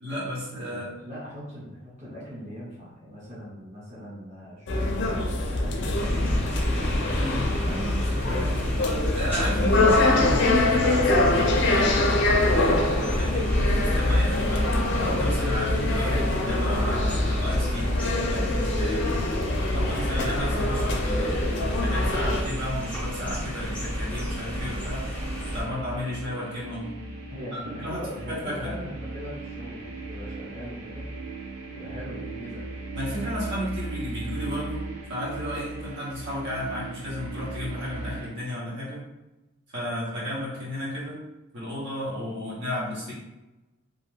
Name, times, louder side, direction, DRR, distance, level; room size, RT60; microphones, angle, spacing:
voice 1, 0.0-0.9 7.6-8.5 9.1-12.8 13.2-14.6 14.9-17.9 18.3-19.1 19.6-21.4 21.8-25.1 25.5-26.9 27.5-28.7 32.9-34.8 35.1-39.0 39.7-41.2 41.5-43.1, equal, 60° right, -7 dB, 1.0 m, -33 dB
voice 2, 0.7-6.5 7.0-8.7 27.3-31.0 31.7-32.6 39.8-40.1, equal, 35° right, -8 dB, 1.0 m, -40 dB
sound 1, 4.7-22.4, left 2 dB, 60° left, 0.4 m, -24 dB
sound 2, 5.9-25.6, equal, 5° left, 0.6 m, -32 dB
sound 3, 22.2-38.3, right 3 dB, 80° right, 0.6 m, -38 dB
2.5 x 2.3 x 3.2 m, 1.0 s
head